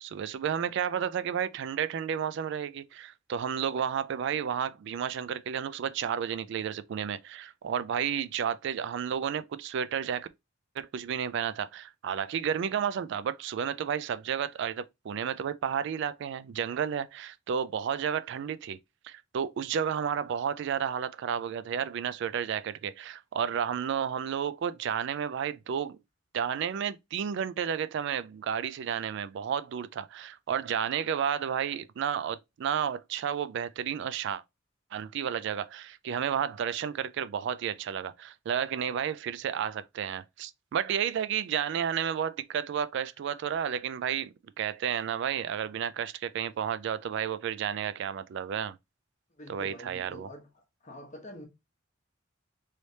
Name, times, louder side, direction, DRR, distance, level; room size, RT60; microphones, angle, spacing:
voice 1, 0.0-10.3 10.8-18.8 19.0-26.0 26.3-34.4 34.9-48.8 49.5-50.3, right 8 dB, 65° right, 0.3 m, -32 dB
voice 2, 49.4-50.5 50.8-51.5, equal, 40° left, 0.9 m, -46 dB
3.2 x 3.1 x 2.7 m
head